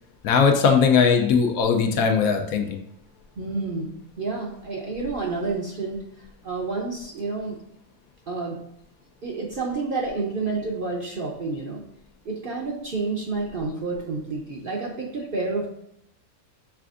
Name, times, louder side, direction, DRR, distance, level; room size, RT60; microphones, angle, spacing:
voice 1, 0.2-2.8, left 6 dB, 80° left, 5 dB, 1.0 m, -19 dB
voice 2, 3.4-3.9 4.2-7.6 8.3-8.6 9.2-11.8 12.2-15.7, right 3 dB, 55° right, -1 dB, 0.6 m, -29 dB
5.8 x 3.4 x 2.5 m, 0.76 s
omnidirectional pair, 1.5 m